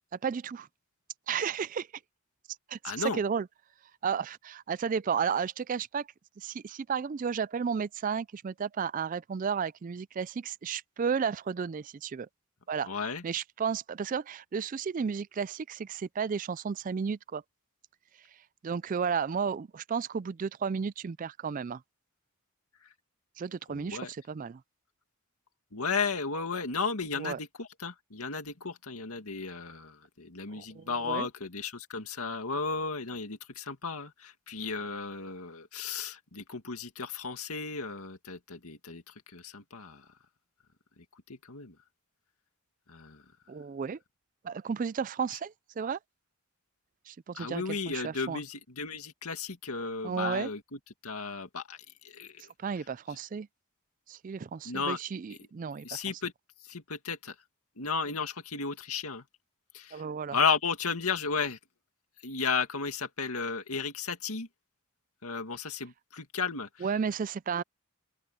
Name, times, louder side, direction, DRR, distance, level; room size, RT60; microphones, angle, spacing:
voice 1, 0.1-0.7 1.3-1.9 2.7-3.5 4.0-6.1 6.4-12.3 12.7-17.4 18.6-21.8 23.4-24.6 27.2-27.4 30.5-31.3 43.5-44.0 44.4-46.0 47.1-48.4 50.0-50.5 52.6-53.5 54.1-56.0 59.9-60.4 66.8-67.6, right 6 dB, 40° right, 0.3 m, -33 dB
voice 2, 2.8-3.2 12.8-13.2 23.7-24.1 25.7-39.0 39.3-40.0 41.5-41.8 42.9-43.2 47.3-50.6 51.0-51.8 52.1-52.4 54.6-55.0 55.8-56.3 56.6-57.3 57.8-59.2 59.7-60.0 60.3-61.6 62.2-64.5 65.2-66.9, left 5 dB, 85° left, 2.3 m, -34 dB
open air
head